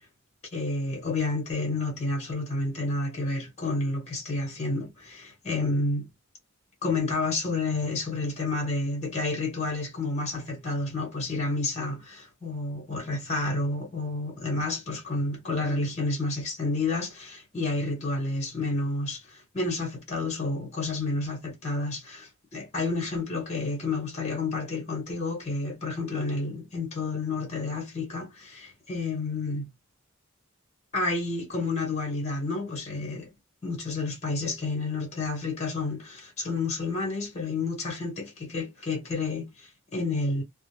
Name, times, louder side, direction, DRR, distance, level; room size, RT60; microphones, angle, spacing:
voice 1, 0.5-6.1 6.8-29.7 30.9-33.3 33.6-40.4, left 3 dB, 35° left, 1.1 m, -30 dB
2.3 x 2.1 x 3.0 m
head